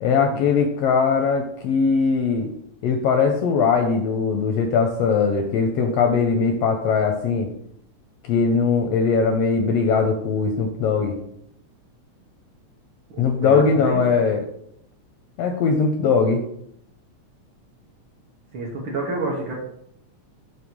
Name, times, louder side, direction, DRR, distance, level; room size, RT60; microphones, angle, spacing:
voice 1, 0.0-2.5 2.8-7.5 8.2-11.2 13.2-14.4 15.4-16.4, left 5 dB, 75° left, 4 dB, 1.5 m, -20 dB
voice 2, 13.1-14.0 18.5-19.5, right 2 dB, 60° right, -3 dB, 1.5 m, -29 dB
6.2 x 3.0 x 5.2 m, 0.71 s
omnidirectional pair, 3.3 m